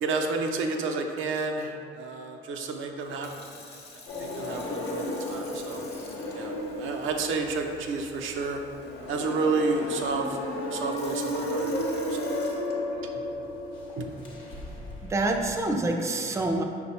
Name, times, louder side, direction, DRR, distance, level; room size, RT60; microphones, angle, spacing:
voice 1, 0.0-3.8 4.2-5.9 6.3-8.6 9.1-10.4 10.7-12.4 14.0-14.1, right 3 dB, 80° right, 3 dB, 0.5 m, -31 dB
Sink (filling or washing) / Fill (with liquid), 3.0-13.2 13.9-14.2, left 3 dB, 55° left, 0.8 m, -51 dB
sound 1, 4.1-15.7, left 1 dB, 80° left, 0.8 m, -34 dB
voice 2, 14.5-16.6, right 2 dB, 15° right, 3 dB, 0.4 m, -28 dB
5.3 x 2.2 x 4.2 m, 2.4 s
cardioid pair, 90°, 20 cm